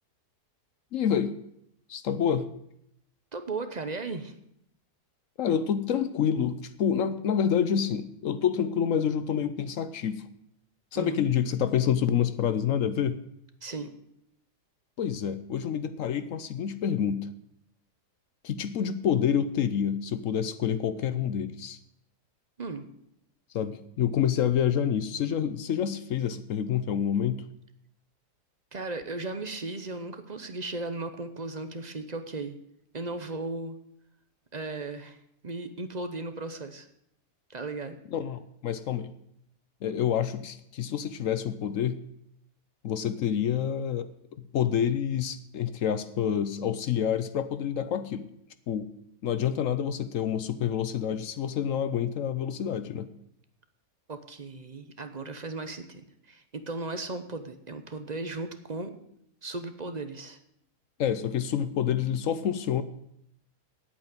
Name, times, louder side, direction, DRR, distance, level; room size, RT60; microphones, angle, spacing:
voice 1, 0.9-1.4 1.9-2.5 5.4-10.2 10.9-13.2 15.0-17.3 18.4-21.8 23.5-27.4 38.1-39.1 39.8-42.0 42.8-44.1 44.5-48.3 48.7-48.9 49.2-53.1 61.0-62.8, left 8 dB, 60° left, 12 dB, 0.9 m, -28 dB
voice 2, 3.3-4.3 10.9-11.2 13.6-13.9 22.6-22.9 28.7-32.6 32.9-33.8 34.5-35.2 35.4-36.9 37.5-38.0 54.1-58.9 59.4-60.4, right 3 dB, 35° right, 8 dB, 0.7 m, -36 dB
8.7 x 8.5 x 8.8 m, 0.74 s
omnidirectional pair, 1.8 m